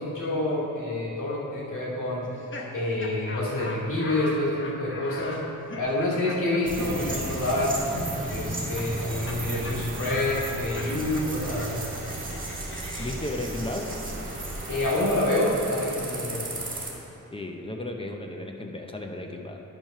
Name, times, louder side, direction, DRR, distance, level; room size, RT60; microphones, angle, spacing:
voice 1, 0.0-2.3 2.7-5.4 5.7-7.8 8.3-11.8 14.7-16.4, left 1 dB, 80° left, -6 dB, 2.5 m, -27 dB
Laughter, 2.2-9.4 9.6-9.8 10.1-15.8, left 2 dB, 40° left, 0.9 m, -40 dB
sound 1, 6.7-16.9, right 2 dB, 30° right, 1.7 m, -34 dB
voice 2, 13.0-14.0 17.3-19.6, left 1 dB, 20° left, 3 dB, 0.6 m, -34 dB
10.5 x 6.1 x 5.6 m, 2.9 s
wide cardioid pair, 160°, 30 cm